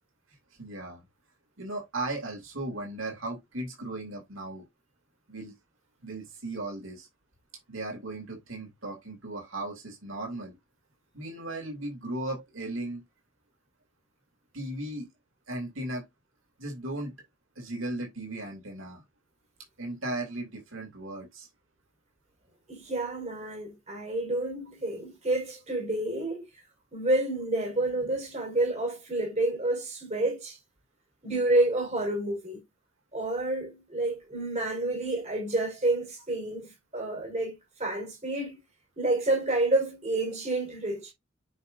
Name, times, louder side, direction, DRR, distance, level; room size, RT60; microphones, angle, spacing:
voice 1, 0.6-1.0 1.6-4.6 5.3-5.5 6.0-7.1 7.7-10.6 11.1-13.0 14.5-15.1 15.5-16.0 16.6-17.1 17.6-19.0 19.8-21.5, right 2 dB, 85° right, 2.7 m, -36 dB
voice 2, 22.7-26.5 26.9-30.6 31.2-32.6 33.1-38.6 39.0-41.1, right 2 dB, 35° right, 4.5 m, -29 dB
9.3 x 5.3 x 2.6 m
head